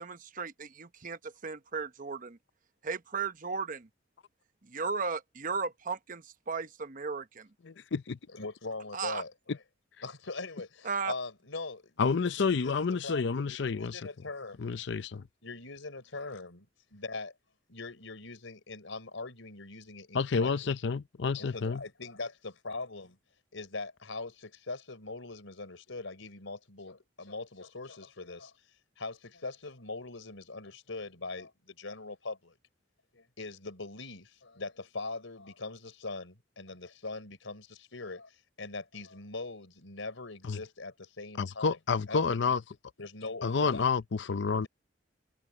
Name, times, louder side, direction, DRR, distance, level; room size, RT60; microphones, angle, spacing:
voice 1, 0.0-2.4 2.8-3.9 4.7-7.5 8.9-9.2 10.8-11.1, right 5 dB, 45° right, 0.9 m, -35 dB
voice 2, 7.6-8.2 12.0-14.0 14.6-15.3 20.1-21.8 40.4-40.6 41.4-42.6 43.4-44.7, left 5 dB, 65° left, 0.5 m, -29 dB
voice 3, 8.3-9.6 10.0-12.0 12.4-12.7 13.0-13.2 13.7-14.7 15.4-16.7 16.9-17.3 17.7-20.7 21.3-23.2 23.5-28.5 29.0-32.5 33.1-41.8 42.1-42.4 43.0-43.9 44.5-44.7, left 3 dB, 85° left, 3.7 m, -41 dB
head